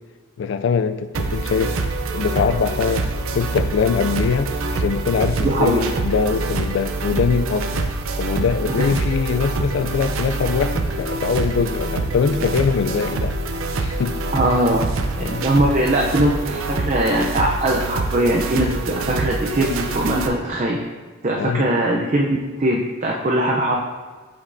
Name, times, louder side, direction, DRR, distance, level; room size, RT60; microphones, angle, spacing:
voice 1, 0.4-1.8 2.1-7.9 8.2-13.4 13.8-14.2 15.2-15.5 21.4-21.7, left 6 dB, 60° left, 11 dB, 0.3 m, -22 dB
sound 1, 1.1-20.3, right 3 dB, 80° right, 0.5 m, -25 dB
voice 2, 5.4-5.8 8.8-8.9 14.3-14.8 15.1-20.8 21.2-23.8, right 1 dB, 35° right, -1 dB, 0.5 m, -21 dB
8.2 x 5.2 x 2.6 m, 1.4 s
head